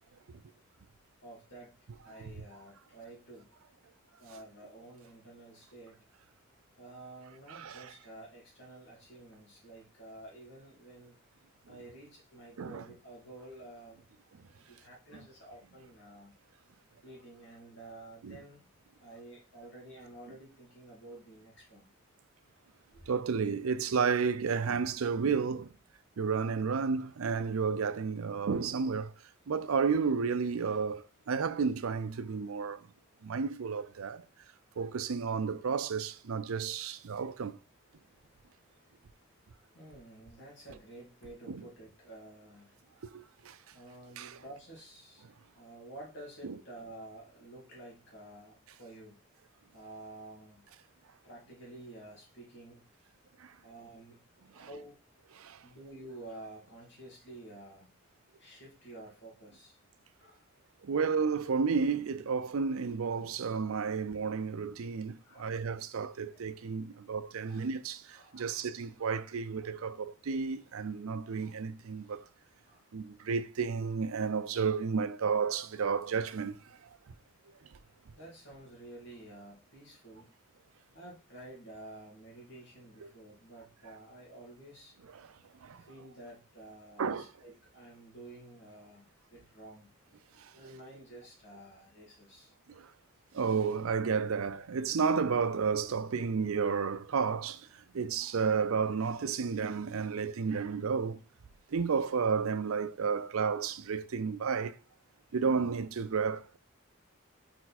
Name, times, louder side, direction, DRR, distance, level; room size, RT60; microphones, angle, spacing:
voice 1, 1.2-1.8 2.0-3.5 4.2-6.0 6.8-11.2 11.7-14.1 14.7-16.3 17.0-18.7 19.0-21.9 22.9-23.0 38.0-42.9 43.7-45.3 45.5-49.2 49.7-50.6 51.2-52.9 53.6-54.2 54.5-55.0 55.6-57.9 58.4-59.8 60.2-60.5 65.2-65.6 66.3-66.4 67.5-67.7 68.1-68.7 69.6-69.7 72.6-72.9 78.1-80.3 80.9-84.9 85.8-89.9 90.5-92.5, right 1 dB, 55° left, 2.7 m, -51 dB
voice 2, 7.5-7.9 12.6-12.8 18.2-18.4 23.1-25.7 26.2-29.1 29.5-32.9 33.2-34.2 34.8-37.6 41.5-41.6 43.0-43.6 44.2-44.4 46.4-46.5 53.4-53.6 54.5-54.7 55.3-55.6 60.8-72.3 72.9-76.9 83.0-83.1 85.1-85.4 85.6-85.8 87.0-87.3 90.4-90.7 92.7-92.9 93.3-101.2 101.7-104.7 105.3-106.6, right 5 dB, 80° right, 0.5 m, -32 dB
5.0 x 4.5 x 4.2 m
head